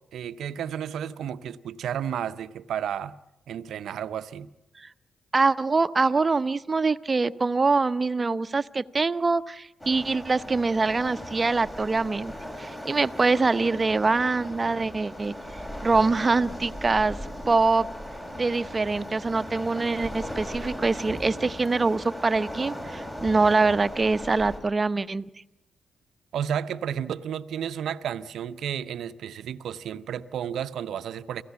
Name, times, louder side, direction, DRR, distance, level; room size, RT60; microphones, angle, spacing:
voice 1, 0.1-3.1 3.5-4.5 26.3-31.4, right 9 dB, 75° right, 13 dB, 0.7 m, -32 dB
voice 2, 5.3-12.3 12.6-15.3 15.8-17.2 17.5-17.9 18.4-25.3, right 3 dB, 40° right, 13 dB, 0.8 m, -24 dB
Waves surf, 9.8-24.6, equal, 25° left, 6.0 m, -38 dB
29.0 x 16.0 x 7.1 m, 0.96 s
hypercardioid pair, 40°, 0 cm